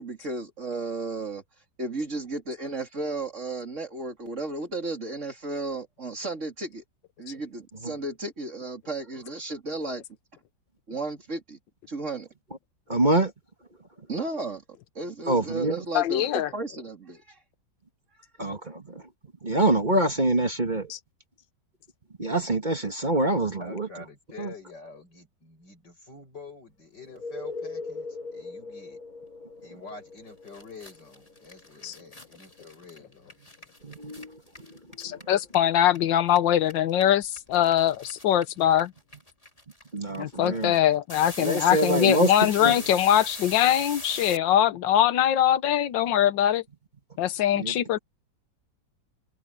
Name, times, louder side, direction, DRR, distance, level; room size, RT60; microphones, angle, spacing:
voice 1, 0.0-1.4 1.8-6.8 7.2-10.0 10.9-11.6 11.9-12.3 14.1-14.6 15.0-17.4, right 2 dB, 40° right, 3.4 m, -34 dB
voice 2, 12.9-13.3 15.3-15.8 18.4-19.1 19.4-20.9 22.2-23.9 24.4-24.5 33.8-35.2 39.9-40.7 41.4-42.8 47.5-48.0, right 1 dB, 25° right, 2.0 m, -26 dB
voice 3, 15.9-16.5 20.9-21.0 31.8-31.9 35.0-38.9 40.2-46.6 47.2-48.0, left 11 dB, 90° left, 1.5 m, -22 dB
voice 4, 23.6-29.0 29.6-33.3 40.4-40.6, left 4 dB, 70° left, 8.7 m, -46 dB
sound 1, 27.0-38.5 42.8-42.9, left 3 dB, 50° left, 5.8 m, -44 dB
sound 2, 30.2-30.3 30.5-36.0 36.2-44.4, left 1 dB, 20° left, 4.0 m, -41 dB
omnidirectional pair, 1.9 m